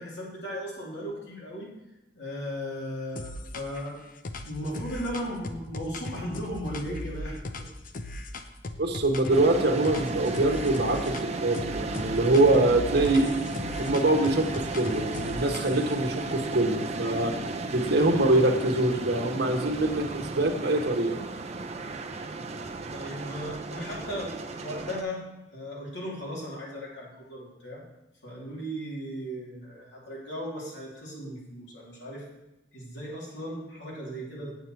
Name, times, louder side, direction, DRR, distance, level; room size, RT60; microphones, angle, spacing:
voice 1, 0.0-1.7 2.1-4.0 4.4-7.7 22.9-25.2 25.5-27.8 28.2-32.2 32.7-34.6, equal, 75° left, -4 dB, 3.2 m, -36 dB
sound 1, 3.2-3.9 4.2-9.5 9.8-11.3 11.5-16.0, left 2 dB, 50° left, 0.6 m, -38 dB
voice 2, 8.8-13.3 13.8-17.3 17.7-21.2, right 2 dB, 65° right, 3 dB, 1.2 m, -24 dB
sound 2, 9.3-25.0, right 2 dB, 35° right, 0.6 m, -35 dB
8.5 x 8.0 x 4.5 m, 0.99 s
head